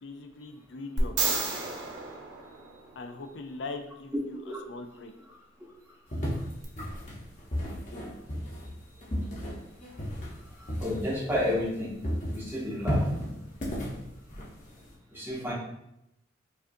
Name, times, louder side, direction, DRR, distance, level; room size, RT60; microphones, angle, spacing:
voice 1, 0.0-1.4 3.0-5.1, left 3 dB, 75° left, 6 dB, 0.5 m, -41 dB
sound 1, 1.0-3.2 6.6-6.7, right 3 dB, 85° right, 0.7 m, -31 dB
sound 2, 6.1-11.8 12.0-14.9, equal, 40° left, 0.9 m, -34 dB
voice 2, 10.8-11.9 12.3-13.0 15.1-15.5, left 1 dB, 10° right, -5 dB, 0.9 m, -30 dB
4.9 x 2.5 x 2.6 m, 0.83 s
head